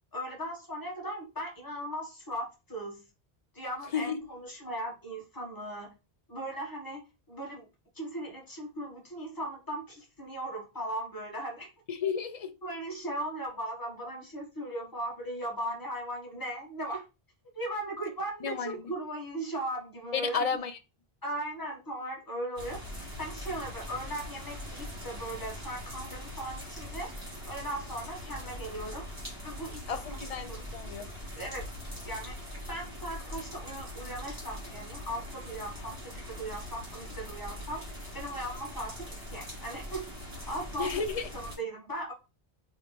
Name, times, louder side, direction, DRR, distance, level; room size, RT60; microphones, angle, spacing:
voice 1, 0.1-3.0 3.5-5.9 6.3-7.0 7.3-7.7 7.9-11.7 12.6-17.1 17.5-20.5 21.2-22.8 23.2-27.1 27.4-29.0 29.4-30.2 30.5-30.6 31.3-31.6 32.0-32.4 32.7-40.1 40.4-41.0 41.3-42.1, right 1 dB, 20° left, 1.4 m, -38 dB
voice 2, 11.9-12.5 18.4-18.8 20.1-20.8 29.9-31.1 40.8-41.3, left 6 dB, 55° left, 0.4 m, -32 dB
sound 1, 22.6-41.6, left 1 dB, 25° right, 2.5 m, -42 dB
3.5 x 3.1 x 3.8 m
omnidirectional pair, 1.1 m